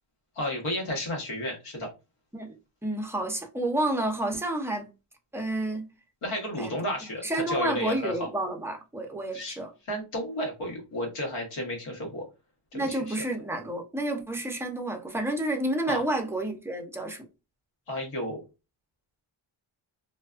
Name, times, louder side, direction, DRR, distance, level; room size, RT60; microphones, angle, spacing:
voice 1, 0.3-1.9 6.2-8.3 9.3-9.6 9.9-12.2 12.7-13.2 15.9-16.0 17.9-18.4, left 1 dB, 85° left, 1.2 m, -32 dB
voice 2, 2.8-4.9 5.3-5.9 6.6-6.7 7.2-9.7 12.7-17.3, right 1 dB, 5° right, 0.4 m, -30 dB
2.5 x 2.2 x 2.3 m
cardioid pair, 85°, 50 cm